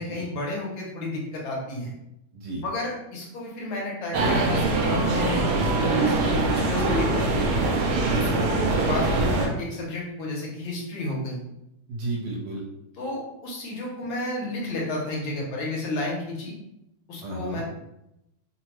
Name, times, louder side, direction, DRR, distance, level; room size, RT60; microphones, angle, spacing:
voice 1, 0.0-1.9 2.6-5.4 5.8-7.5 8.2-11.4 12.9-16.5 17.1-17.6, left 2 dB, 70° left, -3 dB, 1.5 m, -32 dB
voice 2, 2.3-2.6 8.1-8.4 11.9-12.6 17.2-17.6, right 2 dB, 70° right, -4 dB, 1.6 m, -32 dB
sound 1, 4.1-9.5, right 2 dB, 90° right, 0.9 m, -23 dB
3.7 x 2.1 x 3.0 m, 0.86 s
omnidirectional pair, 2.4 m